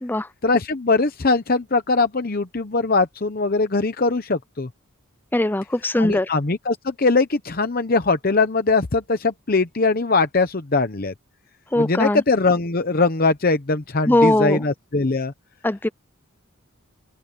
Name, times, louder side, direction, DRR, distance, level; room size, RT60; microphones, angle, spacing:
voice 1, 0.4-4.7 6.0-11.1 11.8-15.3, left 3 dB, 40° left, 0.8 m, -21 dB
voice 2, 5.3-6.3 11.7-12.2 14.1-14.6 15.6-15.9, left 1 dB, 10° left, 0.4 m, -20 dB
open air
head